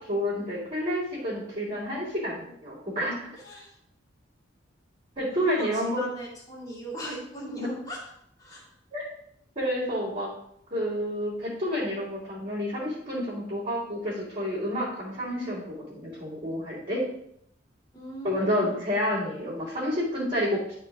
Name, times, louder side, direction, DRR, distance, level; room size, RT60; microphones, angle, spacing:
voice 1, 0.0-3.3 5.2-6.0 7.6-7.7 8.9-9.1 9.5-10.3 10.7-15.6 15.9-17.0 18.2-20.7, equal, 35° right, -9 dB, 3.3 m, -29 dB
voice 2, 3.4-3.7 5.3-8.0 8.4-8.6 17.9-18.7, equal, 20° left, -5 dB, 2.8 m, -39 dB
11.5 x 4.6 x 3.7 m, 0.71 s
head